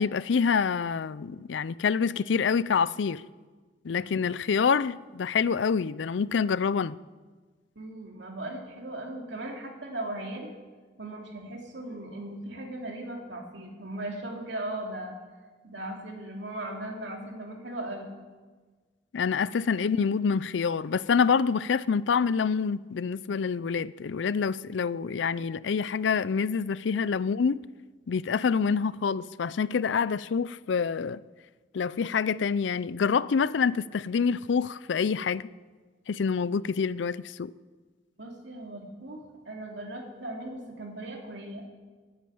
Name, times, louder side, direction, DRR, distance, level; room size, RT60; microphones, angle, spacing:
voice 1, 0.0-3.2 3.8-7.0 19.1-27.6 28.1-31.2 31.7-35.5 36.1-37.5, left 6 dB, 80° left, 0.4 m, -26 dB
voice 2, 7.7-10.5 11.0-15.2 15.6-18.1 38.2-41.6, right 1 dB, 70° right, 3.0 m, -38 dB
18.5 x 9.1 x 7.8 m
head